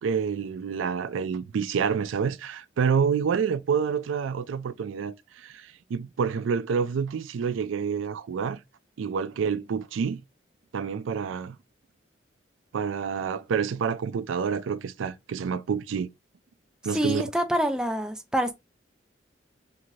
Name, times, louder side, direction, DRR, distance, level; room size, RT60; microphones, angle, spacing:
voice 1, 0.0-8.6 9.0-10.2 10.7-11.6 12.7-16.1 16.8-17.2, right 6 dB, 85° right, 0.3 m, -28 dB
voice 2, 16.9-18.5, equal, 5° right, 0.3 m, -26 dB
2.6 x 2.5 x 3.0 m
head